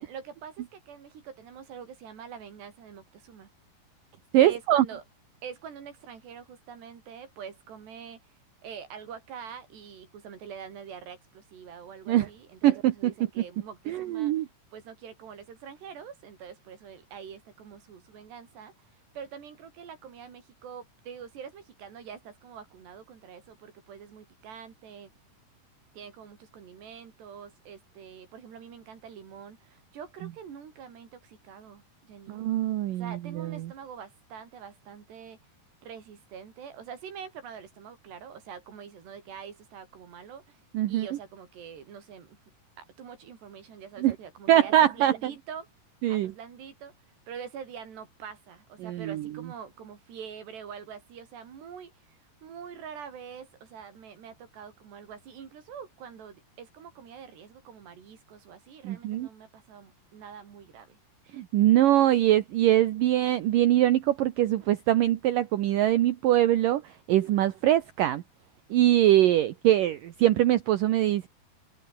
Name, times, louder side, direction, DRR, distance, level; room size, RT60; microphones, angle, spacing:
voice 1, 0.0-3.5 4.4-5.0 5.4-8.3 8.6-14.5 14.7-25.1 25.9-32.4 32.9-35.4 35.8-40.6 40.9-42.4 42.8-45.7 46.1-46.9 47.3-61.0, right 7 dB, 85° right, 5.9 m, -45 dB
voice 2, 4.3-4.9 12.1-12.3 12.6-12.9 13.9-14.5 32.3-33.7 40.7-41.1 44.0-44.2 44.5-45.3 46.0-46.3 48.8-49.2 58.8-59.3 61.3-66.8 67.1-68.2 68.7-71.3, right 13 dB, 70° right, 2.4 m, -23 dB
omnidirectional pair, 4.7 m